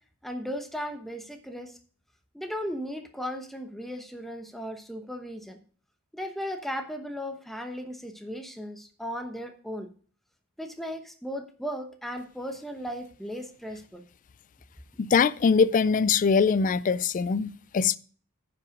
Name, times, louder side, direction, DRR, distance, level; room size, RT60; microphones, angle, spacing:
voice 1, 0.2-1.8 2.3-5.6 6.1-9.9 10.6-14.0, equal, ahead, 1.0 m, -36 dB
voice 2, 15.0-18.0, left 5 dB, 35° left, 0.3 m, -22 dB
9.7 x 5.8 x 5.1 m
head